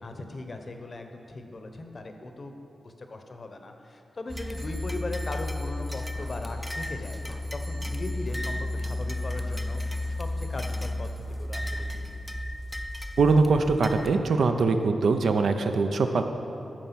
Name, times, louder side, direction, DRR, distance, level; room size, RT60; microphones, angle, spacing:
voice 1, 0.0-2.6 2.8-9.8 10.2-12.2, left 2 dB, 40° left, 5 dB, 0.8 m, -39 dB
sound 1, 4.3-14.1, left 1 dB, 5° left, 0.4 m, -33 dB
voice 2, 13.2-16.2, right 4 dB, 75° right, 6 dB, 0.6 m, -22 dB
13.5 x 4.6 x 5.8 m, 2.9 s
wide cardioid pair, 110°, 0 cm